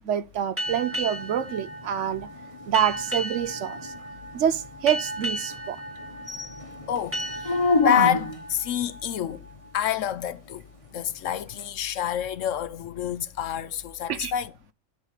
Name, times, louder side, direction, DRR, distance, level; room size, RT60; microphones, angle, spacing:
voice 1, 0.1-2.3 2.7-3.9 4.3-5.8 14.1-14.3, right 10 dB, 65° right, 0.9 m, -26 dB
sound 1, 0.6-9.8, right 1 dB, 10° right, 2.1 m, -36 dB
sound 2, 0.7-8.6 11.6-11.7, left 3 dB, 25° left, 1.0 m, -31 dB
voice 2, 6.9-7.6 7.8-9.5 9.7-14.5, left 10 dB, 70° left, 1.0 m, -28 dB
11.0 x 4.0 x 6.5 m
omnidirectional pair, 1.4 m